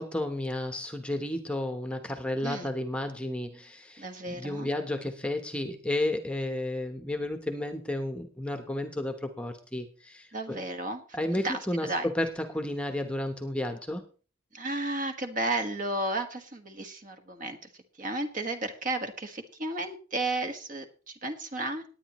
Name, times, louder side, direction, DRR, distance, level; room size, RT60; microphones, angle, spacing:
voice 1, 0.0-10.6 11.1-11.9 12.1-14.0, left 1 dB, 5° left, 6 dB, 0.9 m, -32 dB
voice 2, 4.0-4.7 10.3-12.1 14.5-17.6 18.0-21.8, right 2 dB, 40° right, 6 dB, 1.5 m, -33 dB
19.5 x 9.2 x 3.0 m, 0.38 s
head